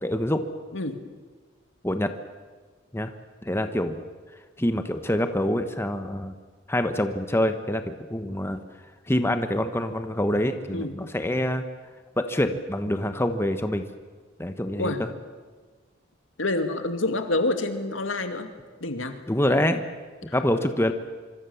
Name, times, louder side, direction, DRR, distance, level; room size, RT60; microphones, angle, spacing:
voice 1, 0.0-0.4 1.8-2.1 2.9-3.1 3.4-4.0 4.6-6.3 6.7-8.6 9.1-11.6 12.2-13.8 14.4-15.1 19.3-19.8 20.2-20.9, left 1 dB, 15° left, 8 dB, 1.3 m, -26 dB
voice 2, 16.4-18.5 18.8-19.2, left 2 dB, 80° left, 7 dB, 2.3 m, -27 dB
25.5 x 24.5 x 7.2 m, 1.4 s
head